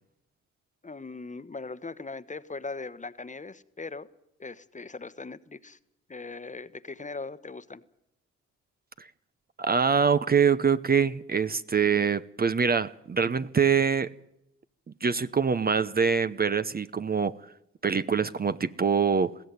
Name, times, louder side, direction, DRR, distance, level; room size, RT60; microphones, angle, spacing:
voice 1, 0.8-4.1 4.4-5.8 6.1-7.8, left 3 dB, 25° left, 1.2 m, -39 dB
voice 2, 9.6-14.1 15.0-17.4 17.8-19.4, right 6 dB, 30° right, 0.8 m, -24 dB
21.0 x 16.0 x 9.6 m
supercardioid pair, 60°, 31 cm